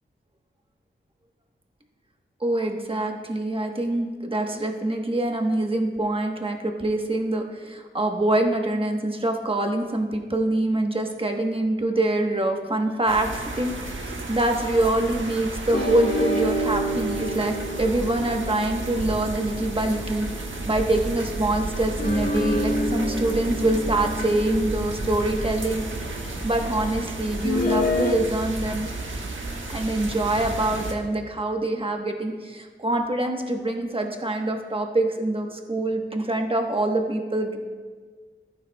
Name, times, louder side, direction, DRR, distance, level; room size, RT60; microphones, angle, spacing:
voice 1, 2.4-13.3 13.5-13.7 14.0-25.8 26.4-28.9 29.7-37.6, right 1 dB, 25° right, 3 dB, 1.2 m, -25 dB
sound 1, 13.1-30.9, right 2 dB, 70° right, 1.3 m, -32 dB
sound 2, 15.7-20.3 21.9-26.1 27.4-28.1, left 1 dB, 50° left, 1.6 m, -29 dB
14.0 x 9.4 x 2.3 m, 1.5 s
wide cardioid pair, 70°, 21 cm